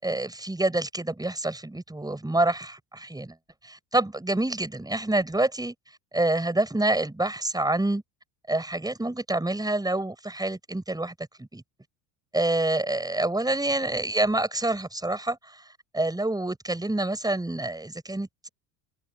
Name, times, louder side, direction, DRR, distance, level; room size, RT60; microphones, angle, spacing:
voice 1, 0.0-3.4 3.6-5.7 6.1-8.0 8.5-11.6 12.3-15.6 15.9-18.5, right 2 dB, 10° right, 6.3 m, -27 dB
open air
supercardioid pair, 95°, 49 cm